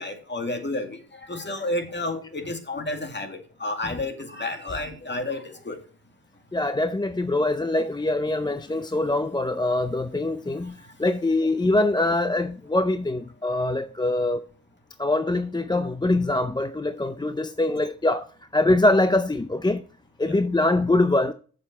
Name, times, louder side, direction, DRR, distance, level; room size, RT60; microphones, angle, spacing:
voice 1, 0.0-5.8 20.3-20.4, left 2 dB, 30° left, 2.1 m, -31 dB
voice 2, 6.5-14.4 15.0-19.8 20.2-21.3, left 2 dB, 10° left, 0.5 m, -23 dB
7.8 x 7.1 x 4.1 m
cardioid pair, 65°, 36 cm